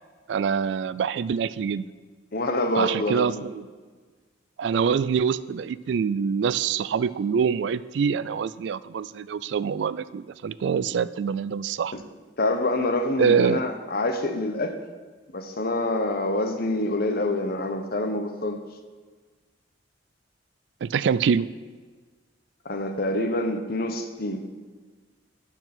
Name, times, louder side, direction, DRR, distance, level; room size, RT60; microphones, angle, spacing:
voice 1, 0.3-1.9 2.8-3.7 4.6-12.0 13.2-13.6 20.8-21.5, right 6 dB, 70° right, 17 dB, 0.3 m, -25 dB
voice 2, 2.3-3.4 11.9-12.0 12.4-14.7 15.3-18.6 22.6-24.4, left 1 dB, 55° left, 6 dB, 0.9 m, -26 dB
12.0 x 4.6 x 5.9 m, 1.4 s
head